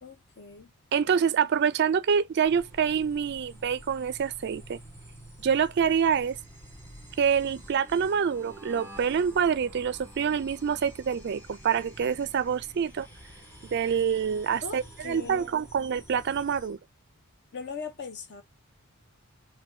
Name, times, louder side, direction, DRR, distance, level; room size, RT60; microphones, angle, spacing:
voice 1, 0.0-0.7 14.6-15.5 17.5-18.4, left 5 dB, 55° left, 0.8 m, -39 dB
voice 2, 0.9-4.8 5.4-6.4 7.2-13.1 13.7-16.8, right 7 dB, 50° right, 0.4 m, -26 dB
sound 1, 2.4-16.8, right 1 dB, 10° left, 1.5 m, -49 dB
4.2 x 2.3 x 2.6 m
head